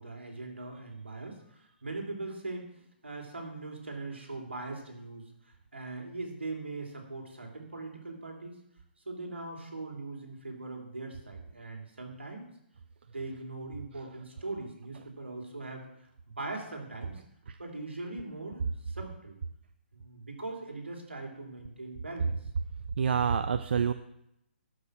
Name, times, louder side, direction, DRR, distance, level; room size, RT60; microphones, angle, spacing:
voice 1, 0.0-8.6 9.0-12.5 13.0-15.9 16.3-17.2 17.6-19.4 19.9-22.3, right 2 dB, 90° right, 1 dB, 3.1 m, -41 dB
voice 2, 23.0-23.9, right 7 dB, 65° right, 11 dB, 0.6 m, -27 dB
12.5 x 5.9 x 6.2 m, 0.79 s
hypercardioid pair, 135°, 6 cm